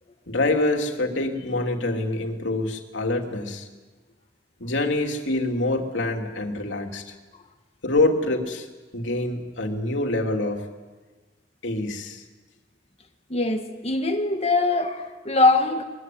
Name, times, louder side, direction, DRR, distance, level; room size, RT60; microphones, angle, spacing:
voice 1, 0.3-3.7 4.6-7.1 7.8-8.7 8.9-10.7 11.6-12.2, left 2 dB, 80° left, 3 dB, 3.1 m, -25 dB
voice 2, 13.3-15.8, left 2 dB, 35° left, 6 dB, 1.7 m, -22 dB
23.0 x 23.0 x 9.4 m, 1.3 s
head